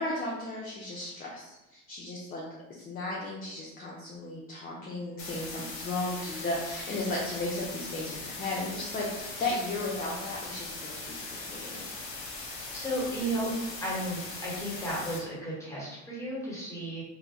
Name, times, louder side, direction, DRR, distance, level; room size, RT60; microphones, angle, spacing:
voice 1, 0.0-2.4 2.7-11.9, left 2 dB, 25° left, -4 dB, 0.5 m, -35 dB
sound 1, 5.2-15.2, left 3 dB, 50° left, 1.0 m, -40 dB
voice 2, 12.7-13.5 13.8-17.0, right 1 dB, 10° left, -7 dB, 1.3 m, -33 dB
2.3 x 2.1 x 3.0 m, 0.99 s
supercardioid pair, 95°, 33 cm